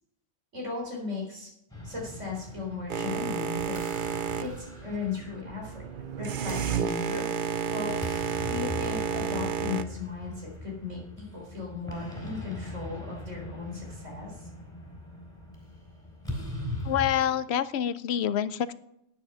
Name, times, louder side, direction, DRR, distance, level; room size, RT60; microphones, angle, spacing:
voice 1, 0.5-1.5 1.8-4.0 4.4-5.8 6.2-7.4 7.7-14.5, left 4 dB, 75° right, -2 dB, 4.4 m, -37 dB
sound 1, 1.7-17.1, left 1 dB, 5° left, 3.9 m, -41 dB
Boat Water vehicle, 2.9-9.8, right 6 dB, 55° right, 0.7 m, -31 dB
voice 2, 16.8-18.7, left 10 dB, 65° left, 14 dB, 0.8 m, -27 dB
10.0 x 9.7 x 5.6 m, 0.79 s
omnidirectional pair, 1.3 m